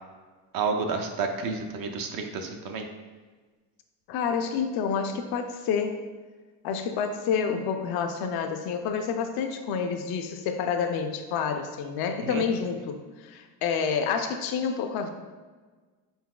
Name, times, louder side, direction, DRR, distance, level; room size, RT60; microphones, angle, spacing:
voice 1, 0.5-2.9 12.2-12.4, right 4 dB, 50° right, 4 dB, 0.6 m, -30 dB
voice 2, 4.1-6.0 6.6-15.1, left 6 dB, 55° left, 6 dB, 0.5 m, -28 dB
4.1 x 4.0 x 2.3 m, 1.3 s
supercardioid pair, 90°, 45 cm